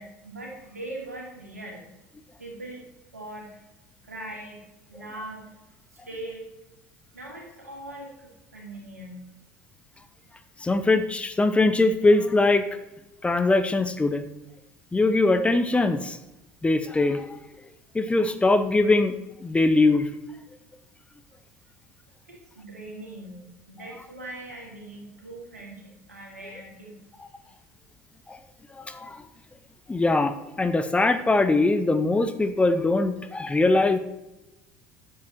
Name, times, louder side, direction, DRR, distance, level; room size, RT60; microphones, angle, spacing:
voice 1, 0.0-1.9 2.4-2.9 3.1-3.5 4.0-6.5 7.1-9.3 22.3-27.0 27.4-27.5, right 1 dB, 85° right, -1 dB, 2.7 m, -41 dB
voice 2, 10.6-12.6 13.2-14.3 14.9-16.2 16.6-17.4 17.9-19.1 19.4-20.1 28.3-28.4 28.7-29.3 29.9-34.0, left 2 dB, 15° left, 9 dB, 0.8 m, -22 dB
10.5 x 7.7 x 4.5 m, 0.95 s
figure-of-eight pair, 65°, 8 cm